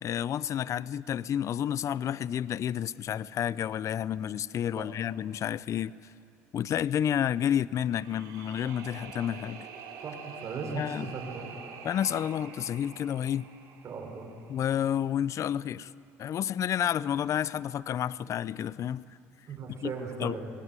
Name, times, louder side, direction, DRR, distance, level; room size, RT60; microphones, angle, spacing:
voice 1, 0.0-5.9 6.5-9.7 10.8-11.1 11.8-13.5 14.5-15.9 16.2-19.0 19.7-19.9 20.2-20.3, left 10 dB, 45° left, 19 dB, 0.5 m, -30 dB
sound 1, 7.8-14.9, right 6 dB, 65° right, 3.9 m, -46 dB
voice 2, 10.0-11.5 13.8-14.3 19.5-20.5, right 4 dB, 45° right, 2 dB, 6.1 m, -38 dB
24.0 x 18.5 x 9.7 m, 2.7 s
hypercardioid pair, 75°, 7 cm